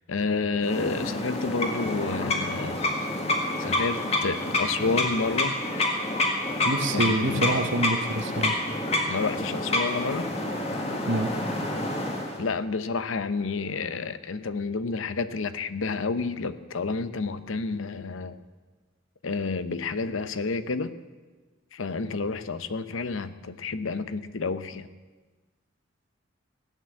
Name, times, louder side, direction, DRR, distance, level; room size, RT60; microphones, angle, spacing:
voice 1, 0.0-2.8 3.6-5.6 6.9-7.6 9.1-10.3 12.4-18.4 19.2-20.9 21.7-24.9, left 4 dB, 85° left, 13 dB, 0.7 m, -30 dB
sound 1, 0.6-12.4, left 2 dB, 30° left, 1.7 m, -28 dB
voice 2, 6.6-8.6 11.1-11.3, right 2 dB, 70° right, 7 dB, 1.1 m, -26 dB
16.0 x 8.9 x 7.5 m, 1.3 s
head